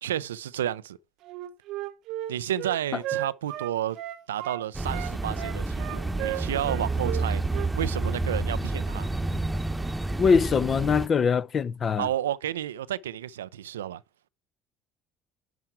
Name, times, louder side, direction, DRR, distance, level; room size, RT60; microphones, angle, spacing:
voice 1, 0.0-1.0 2.3-4.0 4.3-7.4 7.8-9.1 12.0-14.0, right 11 dB, 90° right, 0.4 m, -31 dB
Wind instrument woodwind instrument, 1.2-4.6 4.9-8.2, right 14 dB, 65° right, 0.9 m, -35 dB
sound 1, 4.7-11.1, right 2 dB, 10° right, 1.0 m, -29 dB
voice 2, 10.2-12.1, left 6 dB, 40° left, 0.6 m, -22 dB
11.0 x 4.6 x 4.5 m
hypercardioid pair, 65°, 0 cm